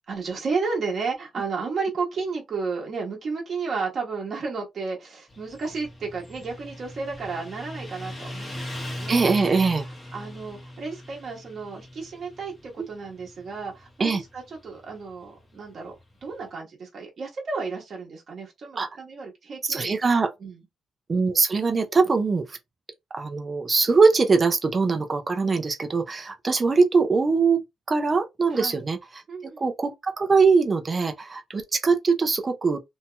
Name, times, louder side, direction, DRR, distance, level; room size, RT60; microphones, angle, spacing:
voice 1, 0.1-9.3 10.1-20.0 20.4-20.6 28.5-28.8 29.3-29.6, right 4 dB, 50° right, 1.3 m, -32 dB
Motorcycle, 5.3-16.4, left 1 dB, 20° left, 1.1 m, -40 dB
voice 2, 9.1-9.8 14.0-14.2 18.8-18.9 19.6-20.3 21.1-22.6 23.1-27.6 27.9-32.8, right 4 dB, 30° right, 0.6 m, -22 dB
2.8 x 2.8 x 2.2 m
cardioid pair, 105°, 0 cm